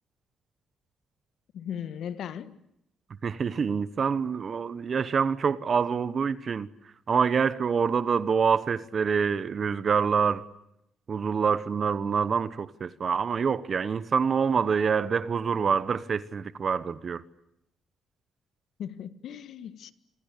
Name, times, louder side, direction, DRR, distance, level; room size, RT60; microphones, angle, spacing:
voice 1, 1.5-2.6 18.8-19.9, left 9 dB, 70° left, 1.6 m, -37 dB
voice 2, 3.2-10.5 11.1-17.2, right 6 dB, 45° right, 1.1 m, -26 dB
27.0 x 26.5 x 8.4 m
cardioid pair, 90°, 0 cm